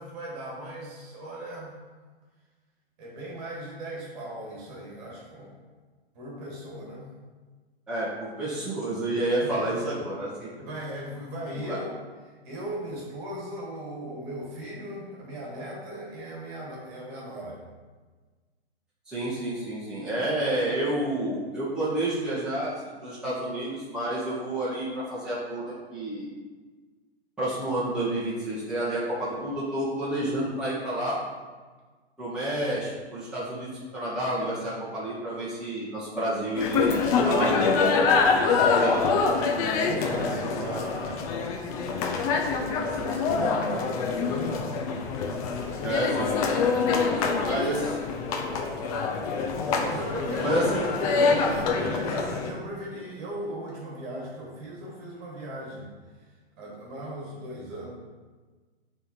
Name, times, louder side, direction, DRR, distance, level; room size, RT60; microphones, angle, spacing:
voice 1, 0.0-1.7 3.0-5.5 6.1-7.1 9.4-10.1 10.5-12.0 12.2-17.6 20.0-20.5 39.6-41.3 42.2-44.6 46.7-48.0 49.8-55.9 56.6-57.9, right 1 dB, 35° right, -3 dB, 2.3 m, -38 dB
voice 2, 7.9-10.5 11.5-11.8 19.1-22.7 23.0-26.3 27.4-31.2 32.2-38.2 38.6-39.1 45.8-46.4 47.4-47.9 50.4-50.8, right 1 dB, ahead, -11 dB, 1.9 m, -29 dB
sound 1, 36.6-52.5, left 4 dB, 35° left, 0.9 m, -25 dB
9.0 x 3.7 x 4.5 m, 1.4 s
figure-of-eight pair, 115°, 32 cm